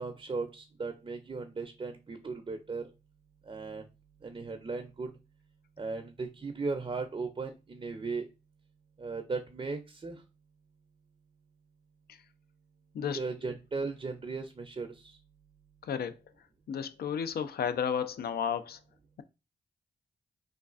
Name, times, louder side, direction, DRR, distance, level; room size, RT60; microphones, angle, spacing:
voice 1, 0.0-2.8 3.5-3.9 4.2-5.1 5.8-8.3 9.0-10.2 13.1-15.2, right 4 dB, 30° right, 0.5 m, -37 dB
voice 2, 16.7-18.8, left 7 dB, 65° left, 0.4 m, -32 dB
3.1 x 2.4 x 2.4 m
cardioid pair, 55°, 17 cm